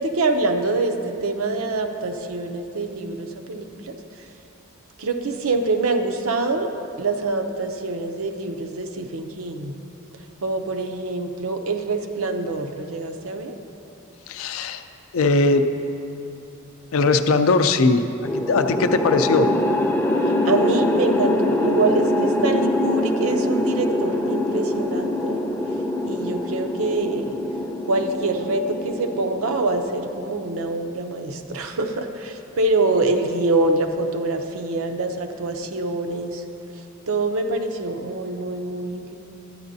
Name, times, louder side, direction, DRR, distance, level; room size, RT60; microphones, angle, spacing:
voice 1, 0.0-4.0 5.0-6.7 7.0-9.8 10.4-13.5 20.4-25.4 26.0-27.3 27.9-36.4 37.1-39.2, right 3 dB, 85° right, 5 dB, 0.6 m, -25 dB
voice 2, 14.3-14.8 15.1-15.7 16.9-18.0 18.3-19.5, left 3 dB, 80° left, 8 dB, 0.4 m, -19 dB
sound 1, 18.2-30.6, left 1 dB, 10° left, 0.5 m, -24 dB
12.5 x 9.2 x 2.7 m, 2.9 s
head